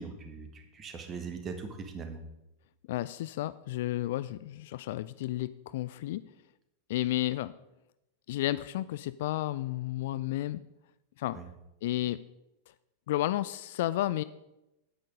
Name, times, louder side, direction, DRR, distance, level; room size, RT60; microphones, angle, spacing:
voice 1, 0.0-2.2 11.3-11.4, right 5 dB, 25° right, 6 dB, 1.6 m, -40 dB
voice 2, 2.9-6.2 6.9-7.5 8.3-10.6 11.2-11.4 11.8-12.2 13.1-14.2, left 15 dB, 55° left, 15 dB, 0.3 m, -32 dB
9.2 x 8.7 x 5.1 m, 0.93 s
figure-of-eight pair, 90°, 0 cm